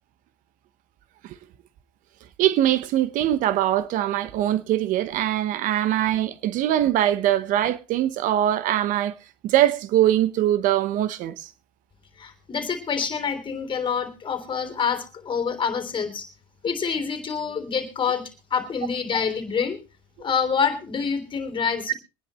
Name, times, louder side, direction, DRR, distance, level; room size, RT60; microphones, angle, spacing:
voice 1, 2.4-9.1 9.4-11.5, right 12 dB, 65° right, 0.9 m, -22 dB
voice 2, 12.2-16.3 16.6-18.2 18.5-19.8 20.2-21.9, left 6 dB, 35° left, 3.4 m, -26 dB
23.5 x 10.0 x 3.1 m
supercardioid pair, 90°, 15 cm